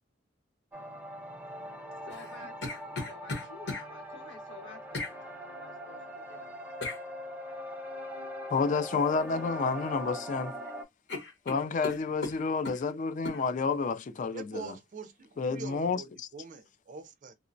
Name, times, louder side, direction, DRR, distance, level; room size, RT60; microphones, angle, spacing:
sound 1, 0.7-10.8, equal, 10° right, 0.7 m, -42 dB
voice 1, 2.0-6.5, left 3 dB, 85° left, 1.3 m, -51 dB
sound 2, 2.1-3.9 4.9-5.2 6.8-7.0 9.0-9.3 9.6-10.3 10.6-10.7 11.1-12.8 13.2-13.4, left 3 dB, 65° left, 1.0 m, -38 dB
voice 2, 8.5-10.6 11.5-14.8 15.4-16.3, left 4 dB, 45° left, 0.4 m, -30 dB
voice 3, 14.3-17.3, right 4 dB, 45° right, 0.4 m, -44 dB
2.8 x 2.0 x 2.6 m
head